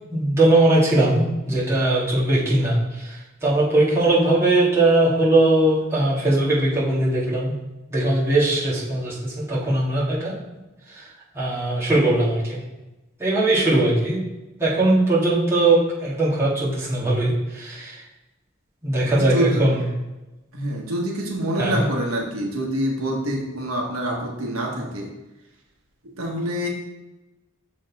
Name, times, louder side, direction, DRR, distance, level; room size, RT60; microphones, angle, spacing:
voice 1, 0.1-7.6 7.9-10.4 10.9-11.1 11.3-12.6 13.2-14.2 14.6-18.0 18.8-19.8 21.6-21.8, right 2 dB, 15° right, -9 dB, 2.0 m, -20 dB
voice 2, 19.0-19.6 20.5-25.1 26.0-26.7, right 1 dB, 85° right, -1 dB, 1.2 m, -26 dB
6.3 x 4.0 x 4.7 m, 1.0 s
head